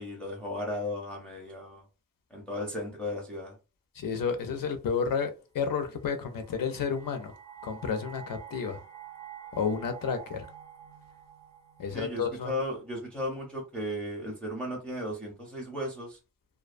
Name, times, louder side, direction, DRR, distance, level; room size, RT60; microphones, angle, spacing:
voice 1, 0.0-1.8 2.3-3.6 11.9-16.2, left 1 dB, 5° left, 0.5 m, -35 dB
voice 2, 3.9-7.3 7.6-8.8 9.5-10.5 11.8-12.6, left 6 dB, 85° left, 0.5 m, -31 dB
sound 1, 6.0-13.1, right 8 dB, 65° right, 0.6 m, -49 dB
2.3 x 2.2 x 2.4 m
wide cardioid pair, 175°, 33 cm